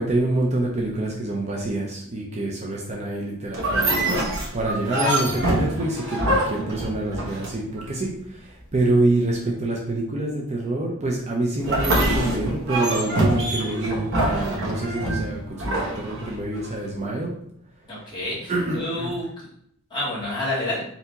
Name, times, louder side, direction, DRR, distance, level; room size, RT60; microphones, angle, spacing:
voice 1, 0.0-17.3 18.0-18.1 18.5-19.2, right 2 dB, 30° right, -2 dB, 0.6 m, -26 dB
sound 1, 3.5-7.8 11.6-16.7, right 1 dB, 60° right, 1.1 m, -25 dB
voice 2, 17.9-19.2 19.9-20.8, left 1 dB, 20° left, -7 dB, 1.7 m, -28 dB
4.4 x 2.8 x 3.9 m, 0.71 s
head